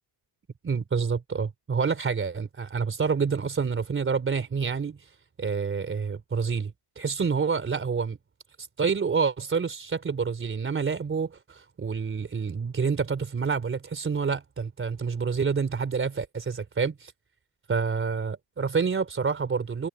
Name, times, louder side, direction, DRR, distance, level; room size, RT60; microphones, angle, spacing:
voice 1, 0.6-5.0 5.4-8.2 8.8-17.1 17.7-19.9, right 5 dB, 25° right, 3.7 m, -28 dB
cardioid pair, 130°, 47 cm